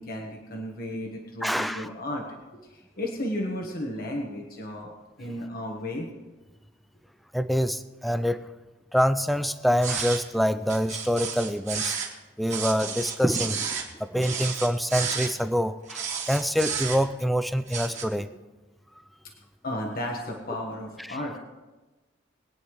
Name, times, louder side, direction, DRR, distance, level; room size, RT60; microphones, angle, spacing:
voice 1, 0.0-2.4 2.7-4.9 5.2-6.1 19.6-21.4, left 1 dB, 50° left, 0 dB, 1.5 m, -33 dB
voice 2, 1.4-1.9 7.3-8.4 8.9-12.0 12.4-13.7 14.0-18.3 21.0-21.2, equal, ahead, 11 dB, 0.4 m, -26 dB
sound 1, 9.8-10.2 10.7-12.1 12.5-13.9 14.2-15.3 15.9-17.2 17.7-18.0, right 6 dB, 40° right, 1.9 m, -31 dB
22.0 x 9.6 x 3.2 m, 1.2 s
head